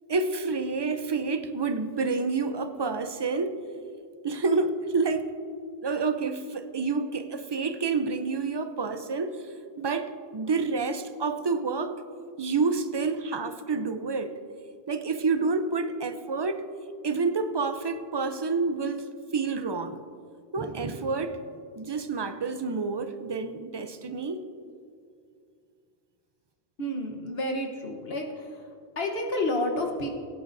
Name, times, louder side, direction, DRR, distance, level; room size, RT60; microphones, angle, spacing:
voice 1, 0.1-3.6 4.2-5.3 5.8-12.0 12.4-14.4 14.9-16.6 17.0-19.1 19.3-20.0 20.5-21.4 21.8-24.4, right 4 dB, 30° right, 9 dB, 0.5 m, -28 dB
voice 2, 26.8-28.6 29.0-30.1, left 1 dB, 70° left, 1 dB, 1.4 m, -30 dB
22.0 x 10.5 x 2.6 m, 2.4 s
omnidirectional pair, 1.1 m